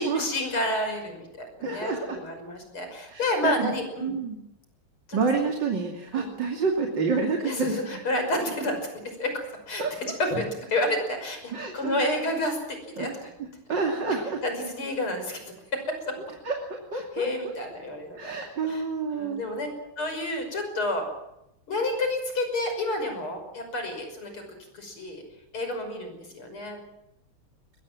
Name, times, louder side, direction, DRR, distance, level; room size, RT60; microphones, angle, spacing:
voice 1, 0.0-4.1 5.1-5.2 6.1-6.3 7.4-8.8 9.0-9.4 9.7-13.3 14.4-15.4 15.7-16.1 17.1-18.3 18.6-19.7 20.0-21.1 21.7-24.4 24.7-25.2 25.5-26.8, left 1 dB, 85° left, 6 dB, 6.6 m, -30 dB
voice 2, 1.6-2.2 3.1-3.7 4.0-4.4 5.1-8.0 9.8-10.1 11.5-12.0 13.0-13.1 13.7-14.4 16.4-16.6 16.9-17.5 18.2-19.4, right 4 dB, 55° right, 1 dB, 3.4 m, -28 dB
22.5 x 21.0 x 7.6 m, 0.86 s
omnidirectional pair, 2.3 m